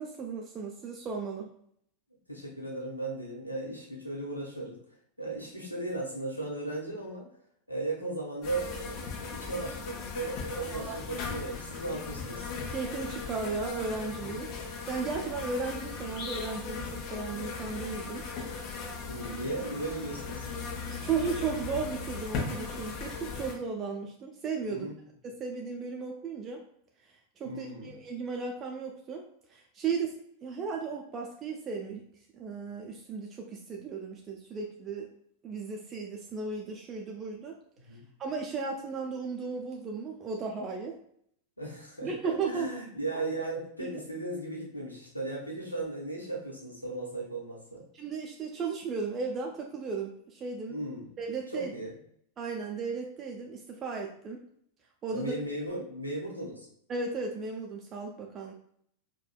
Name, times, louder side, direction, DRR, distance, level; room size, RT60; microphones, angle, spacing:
voice 1, 0.0-1.5 10.7-11.0 12.7-14.5 14.9-18.3 20.9-24.9 25.2-26.6 27.0-29.2 29.5-30.2 30.4-32.0 32.3-35.1 35.4-37.5 37.9-41.0 42.0-42.8 47.9-50.8 51.2-51.7 52.4-54.4 55.0-55.3 56.9-58.5, right 4 dB, 25° right, 0 dB, 0.4 m, -35 dB
voice 2, 2.3-4.8 5.2-7.3 7.7-12.5 19.1-20.4 24.7-25.0 27.4-27.9 37.8-38.0 41.6-47.8 50.7-51.0 51.5-51.9 55.1-56.7, right 2 dB, 90° left, -3 dB, 0.9 m, -36 dB
sound 1, 8.4-23.5, left 5 dB, 45° left, 0.9 m, -38 dB
4.8 x 2.2 x 2.2 m, 0.67 s
figure-of-eight pair, 90°, 0 cm